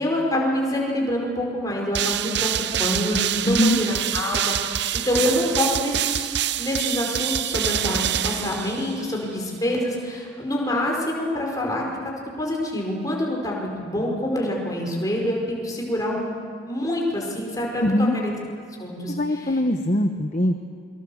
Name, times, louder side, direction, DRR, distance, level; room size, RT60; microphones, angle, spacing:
voice 1, 0.0-2.5 2.8-6.3 6.6-11.8 12.4-16.3 16.7-18.3 18.8-19.1, left 1 dB, 20° left, -2 dB, 5.3 m, -26 dB
sound 1, 1.9-9.2, right 10 dB, 55° right, 0.7 m, -26 dB
voice 2, 3.4-3.8 17.8-18.2 19.1-20.6, left 1 dB, 35° left, 5 dB, 1.0 m, -22 dB
27.5 x 24.5 x 7.3 m, 2.3 s
head